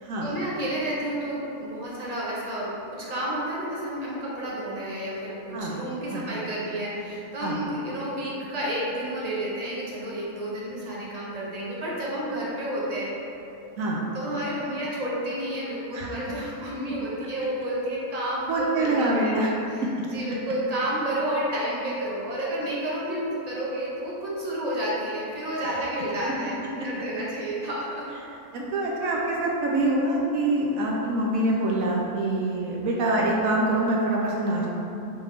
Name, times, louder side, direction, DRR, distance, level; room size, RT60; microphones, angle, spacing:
voice 1, 0.2-13.1 14.1-28.0, right 1 dB, 40° right, -6 dB, 0.6 m, -30 dB
voice 2, 18.5-19.5 28.5-34.7, right 2 dB, 70° right, -3 dB, 0.9 m, -25 dB
4.8 x 3.4 x 3.1 m, 2.9 s
omnidirectional pair, 1.6 m